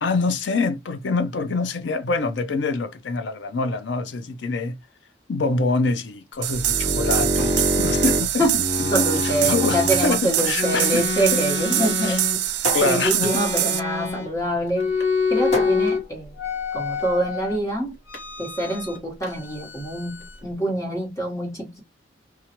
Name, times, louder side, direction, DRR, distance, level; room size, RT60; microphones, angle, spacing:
voice 1, 0.0-4.8 5.3-11.0 11.3-11.4 12.1-12.2 12.7-13.4, left 3 dB, 85° left, 0.5 m, -25 dB
sound 1, 6.4-13.8, right 13 dB, 70° right, 0.4 m, -24 dB
sound 2, 6.5-10.1 10.6-12.7 13.2-14.4 14.7-16.0 16.4-17.6 18.1-19.0 19.2-20.4, left 3 dB, 70° left, 1.2 m, -26 dB
sound 3, 7.4-17.1, left 1 dB, 40° left, 1.2 m, -36 dB
voice 2, 8.9-12.3 12.8-14.9 15.3-16.3 16.7-17.9 18.4-21.8, right 1 dB, 15° left, 1.2 m, -25 dB
3.0 x 2.4 x 2.8 m
head